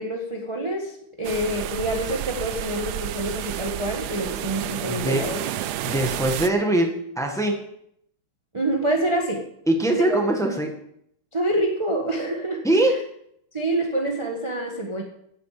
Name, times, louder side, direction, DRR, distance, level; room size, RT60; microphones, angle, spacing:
voice 1, 0.0-5.4 8.5-9.5 9.9-10.2 11.3-13.0 13.5-15.0, right 1 dB, 15° right, 0 dB, 1.2 m, -27 dB
sound 1, 1.2-6.5, right 12 dB, 75° right, 1.0 m, -31 dB
voice 2, 4.9-5.2 5.8-7.6 9.7-10.7 12.6-12.9, right 1 dB, ahead, 3 dB, 1.4 m, -22 dB
15.0 x 9.0 x 5.0 m, 0.72 s
omnidirectional pair, 2.3 m